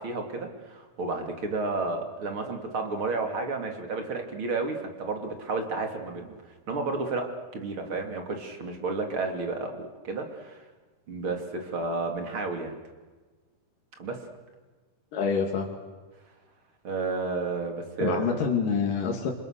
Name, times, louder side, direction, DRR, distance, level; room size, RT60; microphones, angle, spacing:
voice 1, 0.0-6.4 6.7-10.6 11.1-12.8 14.0-14.2 16.8-18.4, right 3 dB, 40° right, 4 dB, 3.6 m, -31 dB
voice 2, 15.1-15.7 18.0-19.3, left 6 dB, 80° left, 1 dB, 3.8 m, -26 dB
28.5 x 26.5 x 6.7 m, 1.3 s
omnidirectional pair, 3.7 m